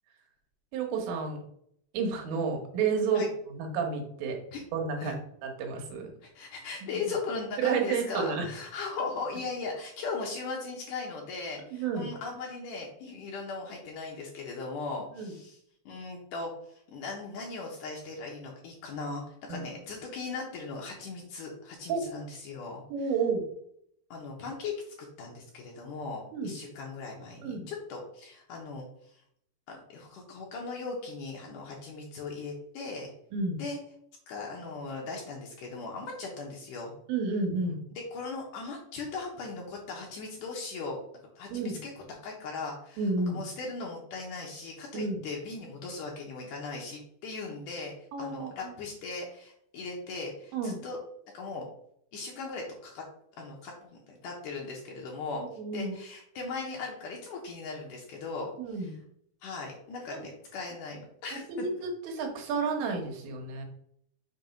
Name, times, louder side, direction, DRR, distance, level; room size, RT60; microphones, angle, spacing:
voice 1, 0.7-1.4 1.9-3.2 3.5-4.4 4.7-5.1 5.4-6.1 7.6-8.5 11.7-12.1 15.1-15.3 19.5-19.7 21.9-22.0 22.9-23.4 26.3-26.5 27.4-27.7 33.3-33.6 37.1-37.8 41.5-41.8 43.0-43.4 44.9-45.2 48.1-48.7 50.5-50.8 55.6-56.0 58.6-58.9 60.1-60.2 61.3-63.7, right 4 dB, 80° right, 2 dB, 3.4 m, -31 dB
voice 2, 6.2-15.6 15.9-22.8 24.1-29.1 29.7-33.1 33.6-33.8 34.3-36.9 38.1-41.0 41.4-41.9 42.2-51.0 51.3-51.6 52.1-53.0 53.4-55.4 55.7-58.9 59.4-61.7, left 4 dB, 75° left, -2 dB, 2.0 m, -38 dB
7.2 x 3.4 x 5.2 m, 0.69 s
omnidirectional pair, 5.0 m